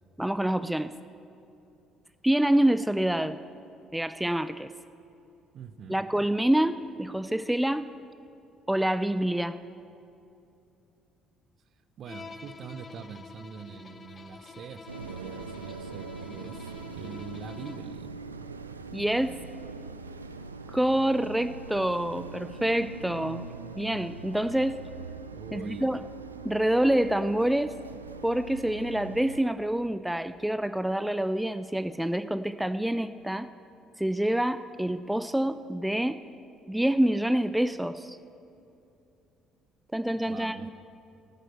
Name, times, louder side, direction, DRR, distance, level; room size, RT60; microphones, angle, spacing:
voice 1, 0.2-0.9 2.2-3.4 3.9-4.7 5.9-7.9 8.7-9.6 18.9-19.4 20.7-23.4 23.8-24.8 25.5-26.0 26.4-27.7 28.2-33.5 34.0-36.2 36.7-38.2 39.9-40.7, right 1 dB, 5° right, 12 dB, 0.4 m, -27 dB
voice 2, 5.5-6.0 12.0-16.7 16.9-18.1 19.2-19.5 25.3-26.0 40.1-40.7, right 6 dB, 50° right, 12 dB, 0.6 m, -44 dB
Bowed string instrument, 12.1-18.0, left 4 dB, 35° left, 0.7 m, -48 dB
sound 1, 14.9-29.4, right 4 dB, 90° right, 0.4 m, -42 dB
10.5 x 9.2 x 7.6 m, 2.7 s
figure-of-eight pair, 50°, 0 cm